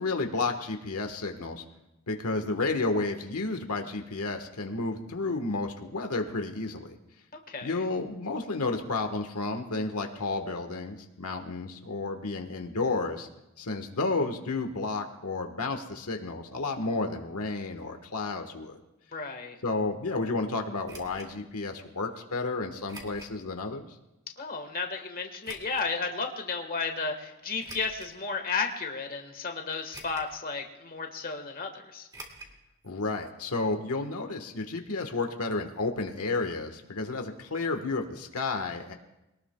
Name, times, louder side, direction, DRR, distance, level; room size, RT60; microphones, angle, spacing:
voice 1, 0.0-1.6 2.1-7.0 7.6-13.3 13.6-18.8 19.6-23.8 32.8-38.9, left 3 dB, 90° left, 5 dB, 1.3 m, -31 dB
voice 2, 7.5-7.8 19.1-19.6 24.4-32.1, left 4 dB, 40° left, 4 dB, 1.4 m, -33 dB
sound 1, 20.8-21.3 22.9-23.4 23.9-24.0 25.4-25.9 27.6-28.2 28.8-28.9 29.9-30.4 30.7-30.8 32.1-32.6 32.8-32.9 33.2-33.3, right 1 dB, 20° right, 2.1 m, -46 dB
22.5 x 18.5 x 2.3 m, 0.94 s
head